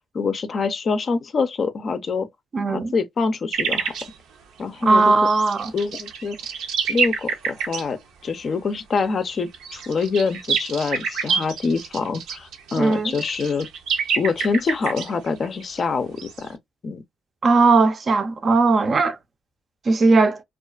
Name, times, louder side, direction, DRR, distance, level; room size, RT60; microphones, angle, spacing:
voice 1, 0.1-2.3 2.7-3.9 4.6-5.1 5.7-6.4 6.9-13.7 14.2-16.6 16.8-17.0, left 4 dB, 45° left, 0.4 m, -25 dB
voice 2, 2.5-2.9 4.8-5.7 12.8-13.1 17.4-19.2 19.9-20.4, right 3 dB, 40° right, 0.4 m, -18 dB
sound 1, 3.5-4.1 5.2-7.8 9.4-15.8 16.2-16.4, right 6 dB, 85° right, 0.6 m, -27 dB
2.4 x 2.3 x 2.2 m
cardioid pair, 90°, 0 cm